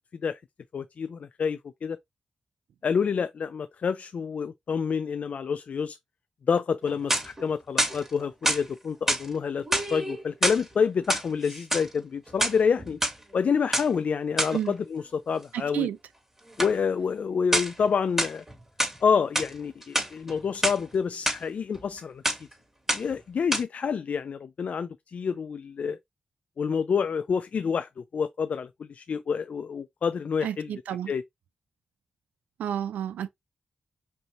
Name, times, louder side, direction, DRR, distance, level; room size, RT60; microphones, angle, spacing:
voice 1, 0.7-2.0 2.8-6.0 6.5-13.0 13.3-15.9 16.6-18.4 19.0-22.4 22.9-26.0 26.6-30.7 31.1-31.2, left 6 dB, 65° left, 0.3 m, -28 dB
sound 1, 6.8-7.4 7.8-8.6 9.1-9.3 9.6-10.6 11.0-11.9 12.3-13.1 13.7-13.9 14.4-14.6 16.6-16.8 17.5-17.8 18.2-19.0 19.3-19.5 19.8-20.8 21.3-21.4 21.7-22.0 22.2-22.5 22.9-23.2 23.5-23.6, right 1 dB, 15° right, 2.5 m, -27 dB
voice 2, 15.5-16.0 30.4-31.1 32.6-33.3, right 10 dB, 90° right, 0.4 m, -30 dB
5.2 x 2.8 x 3.0 m
supercardioid pair, 40°, 3 cm